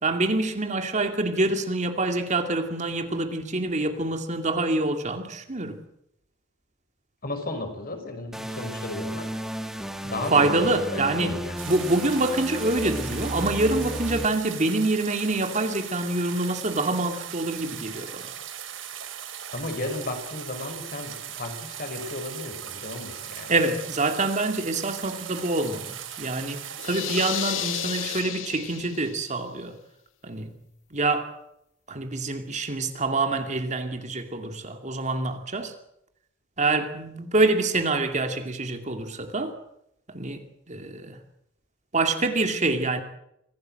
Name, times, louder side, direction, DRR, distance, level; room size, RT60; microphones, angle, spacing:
voice 1, 0.0-5.8 10.3-11.3 11.7-18.3 23.5-29.8 30.2-30.6 30.9-31.3 31.9-35.7 36.6-39.6 40.1-40.4 40.7-41.2 41.9-43.0, right 2 dB, 40° right, 2.5 m, -26 dB
voice 2, 7.2-9.3 10.0-11.6 19.5-23.5, left 2 dB, 50° left, 5.8 m, -34 dB
sound 1, 8.3-14.3, equal, ahead, 1.5 m, -34 dB
sound 2, 11.6-28.2, right 9 dB, 90° right, 3.4 m, -39 dB
sound 3, 26.8-29.3, left 12 dB, 85° left, 0.8 m, -32 dB
25.5 x 17.0 x 7.8 m
head